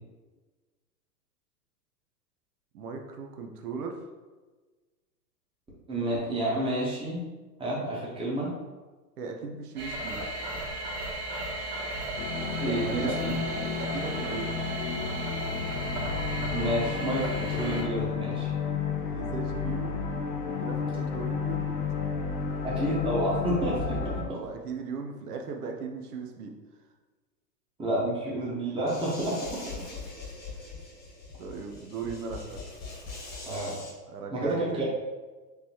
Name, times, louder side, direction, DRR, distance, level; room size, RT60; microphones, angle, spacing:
voice 1, 2.7-4.0 9.2-10.2 12.6-13.2 13.6-14.6 19.0-19.9 20.4-21.7 24.2-26.5 31.4-32.7 34.1-34.9, right 4 dB, 65° right, 3 dB, 0.9 m, -37 dB
voice 2, 5.9-7.2 7.6-8.5 12.6-13.4 16.5-18.5 22.6-24.2 27.8-29.6 33.5-33.8 34.3-34.9, right 1 dB, 10° right, -6 dB, 1.2 m, -30 dB
sound 1, 9.8-17.8, right 1 dB, 40° right, 1.2 m, -35 dB
sound 2, 12.2-24.2, left 5 dB, 75° left, 0.8 m, -32 dB
sound 3, 28.9-33.9, left 3 dB, 20° left, 1.2 m, -42 dB
5.2 x 3.2 x 2.9 m, 1.3 s
hypercardioid pair, 105°, 49 cm